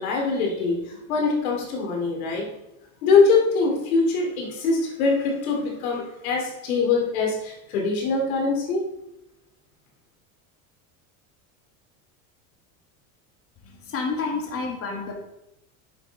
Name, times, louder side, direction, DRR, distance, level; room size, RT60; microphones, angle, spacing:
voice 1, 0.0-2.4 3.0-8.8, left 4 dB, 85° left, 0 dB, 2.6 m, -23 dB
voice 2, 13.6-15.1, left 4 dB, 35° left, 0 dB, 1.9 m, -29 dB
9.1 x 6.6 x 4.0 m, 0.86 s
supercardioid pair, 115°, 42 cm